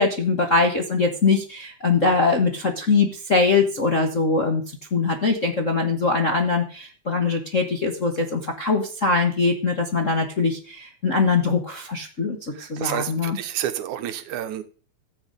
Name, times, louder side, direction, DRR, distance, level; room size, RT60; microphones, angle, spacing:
voice 1, 0.0-13.4, left 4 dB, 45° left, 3 dB, 0.9 m, -22 dB
voice 2, 12.5-14.6, right 11 dB, 80° right, 10 dB, 2.4 m, -29 dB
15.0 x 8.4 x 5.1 m, 0.39 s
omnidirectional pair, 3.4 m